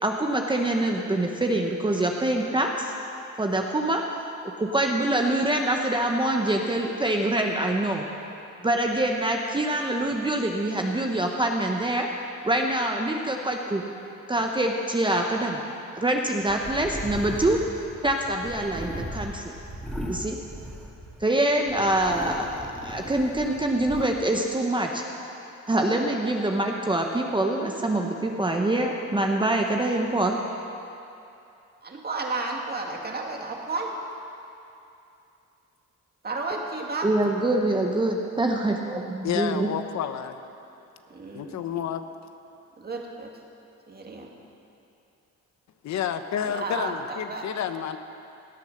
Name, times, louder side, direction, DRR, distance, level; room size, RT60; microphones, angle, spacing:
voice 1, 0.0-2.9 3.4-4.0 4.6-8.1 8.6-12.1 12.4-13.8 14.3-15.6 16.0-17.6 18.0-19.5 20.1-20.4 21.2-25.0 25.7-30.4 37.0-39.7, right 1 dB, 15° right, 1 dB, 1.0 m, -25 dB
sound 1, 16.5-21.3 21.6-24.0, equal, ahead, 2.6 m, -37 dB
voice 2, 31.8-34.0 36.2-37.1 41.1-41.6 42.8-43.3 43.9-44.3 46.4-47.5, right 3 dB, 30° right, 1 dB, 2.1 m, -32 dB
voice 3, 39.2-40.4 41.3-42.0 45.8-48.0, left 9 dB, 65° left, 9 dB, 0.8 m, -30 dB
17.5 x 8.4 x 6.5 m, 2.8 s
cardioid pair, 90°, 30 cm